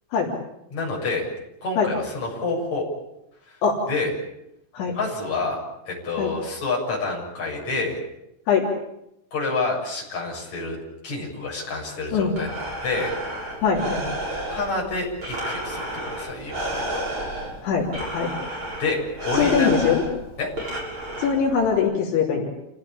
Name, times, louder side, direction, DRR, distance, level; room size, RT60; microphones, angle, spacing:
voice 1, 0.7-1.2 1.6-2.8 3.9-4.1 4.9-5.6 5.9-8.0 9.3-10.8 11.0-13.1 14.5-17.0 18.8-19.0 19.2-19.8 20.4-20.5, left 3 dB, 35° left, -2 dB, 8.4 m, -28 dB
Breathing, 12.1-21.8, right 1 dB, 25° right, 7.4 m, -32 dB
voice 2, 13.6-14.0 17.6-18.3 19.3-20.0 21.2-22.5, left 6 dB, 75° left, -3 dB, 5.8 m, -22 dB
29.0 x 17.0 x 8.7 m, 0.84 s
omnidirectional pair, 5.4 m